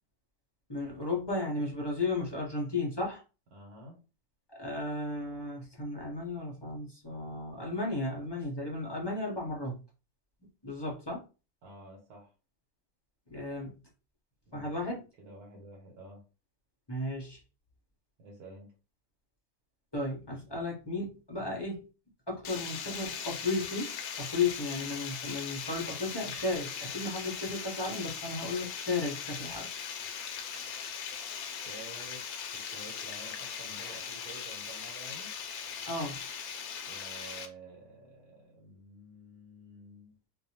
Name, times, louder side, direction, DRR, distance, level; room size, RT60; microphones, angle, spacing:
voice 1, 0.7-3.2 4.5-9.8 10.6-11.2 13.3-13.8 14.5-15.0 16.9-17.4 19.9-21.9 22.3-23.9 24.2-29.7 35.9-36.2, left 2 dB, 25° left, -2 dB, 0.5 m, -34 dB
voice 2, 3.5-4.0 11.6-12.3 14.5-14.7 15.2-16.2 18.2-18.7 31.3-32.2 32.5-35.3 36.9-40.1, right 2 dB, 85° right, -1 dB, 1.3 m, -50 dB
Water, 22.4-37.5, left 7 dB, 80° left, 1.1 m, -39 dB
2.7 x 2.2 x 2.8 m, 0.31 s
omnidirectional pair, 1.6 m